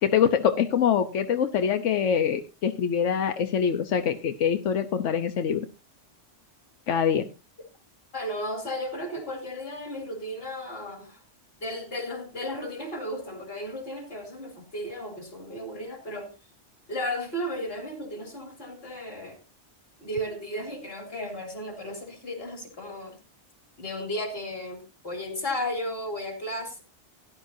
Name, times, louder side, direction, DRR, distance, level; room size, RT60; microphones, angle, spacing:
voice 1, 0.0-5.6 6.9-7.3, left 8 dB, 90° left, 7 dB, 1.2 m, -24 dB
voice 2, 8.1-11.2 11.6-16.3 16.9-19.4 20.0-23.2 23.8-26.8, left 1 dB, 55° left, 3 dB, 3.8 m, -34 dB
17.5 x 11.0 x 2.7 m, 0.27 s
omnidirectional pair, 1.2 m